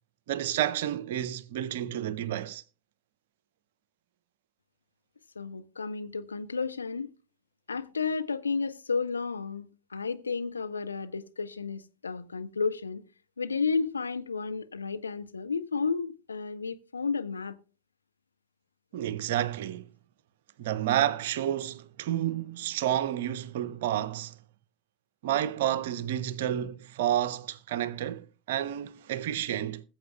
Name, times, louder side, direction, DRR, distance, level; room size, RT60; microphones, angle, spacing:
voice 1, 0.3-2.6 18.9-19.9 20.6-24.3 25.2-29.8, right 11 dB, 55° right, 0.7 m, -30 dB
voice 2, 5.4-7.1 7.7-13.0 13.4-17.6, left 5 dB, 75° left, 0.7 m, -32 dB
21.0 x 7.2 x 2.2 m
figure-of-eight pair, 90°, 0 cm